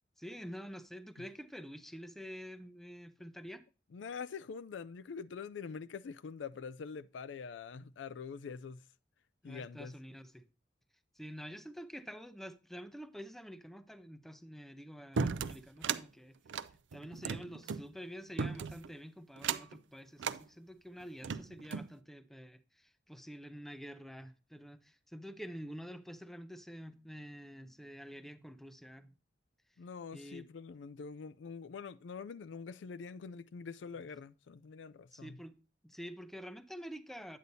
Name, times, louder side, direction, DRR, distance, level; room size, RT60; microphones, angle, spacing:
voice 1, 0.2-3.6 9.4-10.4 11.1-16.4 16.9-29.1 30.1-30.4 35.1-35.6 35.8-37.4, equal, ahead, 0.5 m, -48 dB
voice 2, 3.9-8.8 9.4-9.9 29.8-35.4, left 5 dB, 90° left, 0.4 m, -45 dB
sound 1, 15.2-16.0 16.5-17.8 18.4-18.9 19.4-19.8 20.2-20.4 21.0-21.9, right 6 dB, 80° right, 0.4 m, -36 dB
9.4 x 8.2 x 2.7 m
head